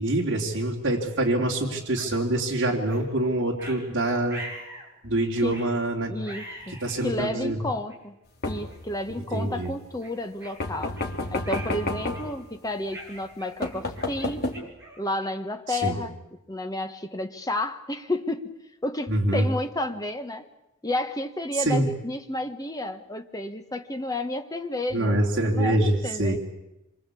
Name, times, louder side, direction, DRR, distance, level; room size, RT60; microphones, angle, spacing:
voice 1, 0.0-4.4 5.0-6.1 6.7-7.6 9.1-9.7 15.7-16.0 19.1-19.5 21.6-21.9 24.9-26.4, right 1 dB, 55° right, -2 dB, 3.1 m, -25 dB
sound 1, 2.0-2.1 2.9-3.0 3.6-3.8 4.3-4.9 5.5-5.7 6.2-7.2 7.9-8.0 8.7-8.9 9.3-9.5 10.0-11.1 11.4-11.8 12.1-12.5 12.9-15.5, right 1 dB, 10° right, 6.7 m, -42 dB
voice 2, 6.1-8.2 8.4-11.0 11.3-14.4 15.0-16.1 16.5-18.5 18.8-20.4 20.8-25.2 25.4-26.4, left 1 dB, 15° left, 6 dB, 1.5 m, -31 dB
sound 2, 8.4-8.9 10.6-12.3 13.2-13.3 13.6-14.6, left 2 dB, 45° left, 2.9 m, -30 dB
27.0 x 24.0 x 8.5 m, 0.92 s
head